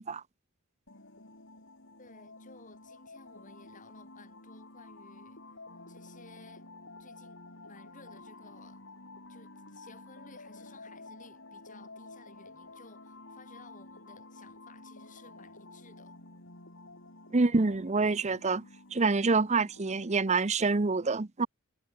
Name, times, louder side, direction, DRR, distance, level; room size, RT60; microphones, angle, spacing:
sound 1, 0.9-20.1, left 2 dB, 60° left, 5.7 m, -51 dB
voice 1, 2.0-5.4 5.9-6.7 7.0-8.8 9.3-16.2, left 3 dB, 35° left, 7.4 m, -56 dB
voice 2, 17.3-18.6 18.9-21.5, right 3 dB, 30° right, 0.7 m, -26 dB
head